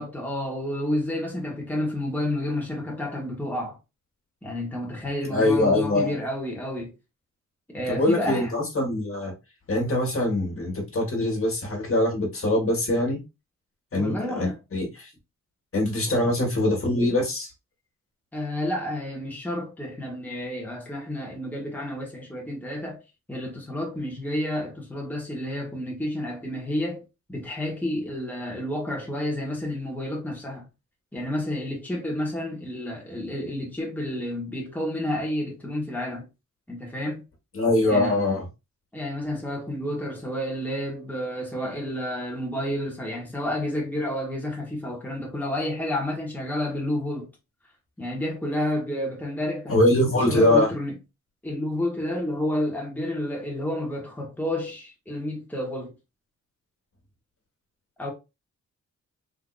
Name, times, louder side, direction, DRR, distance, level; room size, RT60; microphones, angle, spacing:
voice 1, 0.0-3.8 4.4-6.9 7.7-8.5 13.9-14.6 16.1-16.3 18.3-23.0 23.3-27.0 27.3-30.7 31.1-36.3 36.7-37.2 37.9-38.2 38.9-47.3 48.0-49.8 50.0-51.0 51.4-55.9 58.0-58.1, left 1 dB, 5° left, 1.2 m, -30 dB
voice 2, 5.3-6.1 7.9-9.3 9.7-13.2 13.9-15.1 15.7-17.5 37.5-38.4 49.7-50.7, left 1 dB, 45° left, 1.6 m, -23 dB
3.7 x 2.8 x 2.4 m
wide cardioid pair, 105°, 30 cm